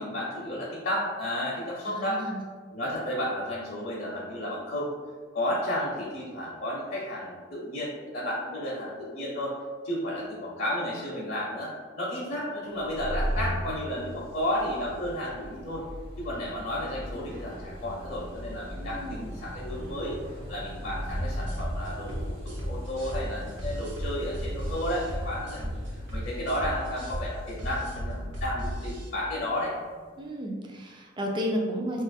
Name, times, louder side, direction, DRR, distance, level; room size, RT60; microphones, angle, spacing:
voice 1, 0.0-2.2 2.7-4.9 5.3-9.5 9.8-11.7 12.0-15.8 16.2-20.2 20.5-29.7, left 1 dB, 50° left, -6 dB, 0.6 m, -32 dB
voice 2, 1.9-2.4 18.8-19.2 30.2-32.0, equal, 25° right, 0 dB, 0.4 m, -32 dB
sound 1, 12.8-30.1, equal, 90° right, 1.1 m, -39 dB
sound 2, 21.1-29.1, equal, 65° right, 0.8 m, -35 dB
2.6 x 2.4 x 4.1 m, 1.5 s
head